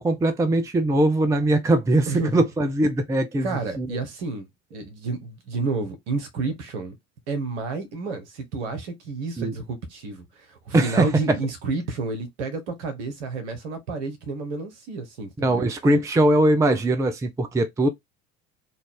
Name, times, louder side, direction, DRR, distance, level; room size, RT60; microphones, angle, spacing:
voice 1, 0.0-3.5 3.8-4.0 9.4-9.5 10.7-11.4 15.4-17.9, right 1 dB, 10° right, 0.5 m, -21 dB
voice 2, 2.1-2.4 3.4-7.0 7.3-15.7, right 3 dB, 65° right, 1.4 m, -30 dB
4.1 x 2.5 x 3.7 m
figure-of-eight pair, 65°, 38 cm